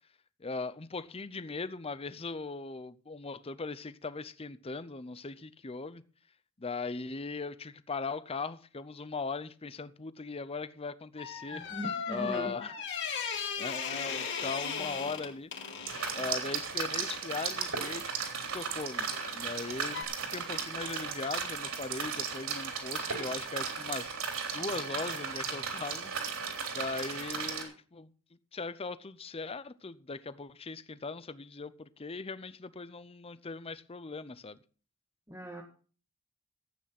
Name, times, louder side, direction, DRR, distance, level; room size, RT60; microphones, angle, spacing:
voice 1, 0.4-6.0 6.6-11.8 12.1-12.8 13.6-15.5 16.1-19.1 19.3-20.1 20.3-26.1 26.7-28.1 28.5-34.6, left 4 dB, 25° left, 0.6 m, -39 dB
sound 1, 11.2-16.4 19.1-19.4 19.9-20.0, left 6 dB, 55° left, 3.4 m, -37 dB
voice 2, 11.5-12.6 35.3-35.6, equal, 10° right, 1.8 m, -39 dB
sound 2, 15.9-27.6, right 6 dB, 65° right, 3.7 m, -36 dB
14.0 x 9.0 x 5.8 m
head